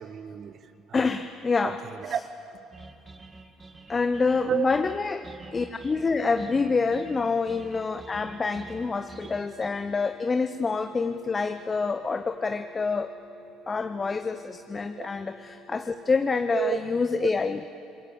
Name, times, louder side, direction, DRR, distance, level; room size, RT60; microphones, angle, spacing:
voice 1, 0.0-1.1 1.6-2.2 4.4-4.7 14.9-15.1 16.5-16.8 17.2-17.3, right 9 dB, 50° right, 11 dB, 1.3 m, -31 dB
voice 2, 0.9-1.8 3.9-13.1 13.7-17.6, left 4 dB, 30° left, 9 dB, 0.9 m, -27 dB
sound 1, 2.7-9.7, right 3 dB, 25° right, 1.6 m, -47 dB
sound 2, 5.9-15.9, equal, 60° left, 3.4 m, -54 dB
27.0 x 21.5 x 7.3 m, 2.7 s
hypercardioid pair, 60°, 0 cm